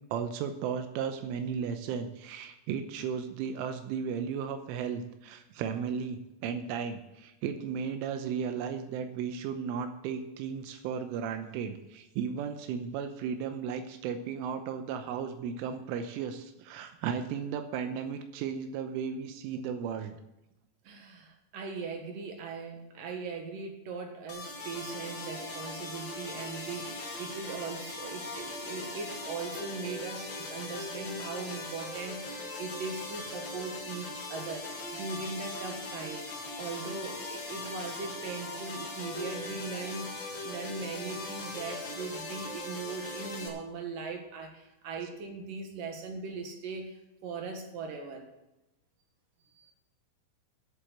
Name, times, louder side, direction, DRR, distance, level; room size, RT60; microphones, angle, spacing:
voice 1, 0.1-20.2, right 7 dB, 85° right, 7 dB, 3.3 m, -35 dB
voice 2, 20.8-40.1 40.4-48.3 49.6-49.7, right 4 dB, 60° right, 3 dB, 2.5 m, -40 dB
sound 1, 24.3-43.5, left 2 dB, 70° left, 1.0 m, -40 dB
11.0 x 8.0 x 7.7 m, 0.91 s
omnidirectional pair, 5.7 m